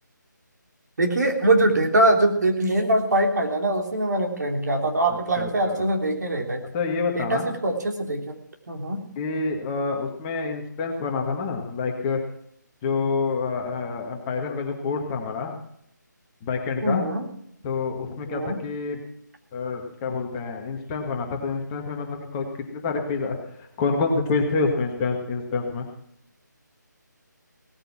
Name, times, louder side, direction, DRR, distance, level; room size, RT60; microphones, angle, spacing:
voice 1, 1.0-6.6 7.2-8.2 8.7-9.0 16.8-17.3 18.3-18.6, right 1 dB, 60° right, 2 dB, 3.3 m, -22 dB
voice 2, 5.1-5.8 6.7-7.5 9.2-12.2 12.8-15.6 16.4-17.0 17.6-19.0 19.5-22.5 22.7-25.9, left 4 dB, 20° left, 2 dB, 1.8 m, -27 dB
18.0 x 8.9 x 6.0 m, 0.72 s
figure-of-eight pair, 155°, 10 cm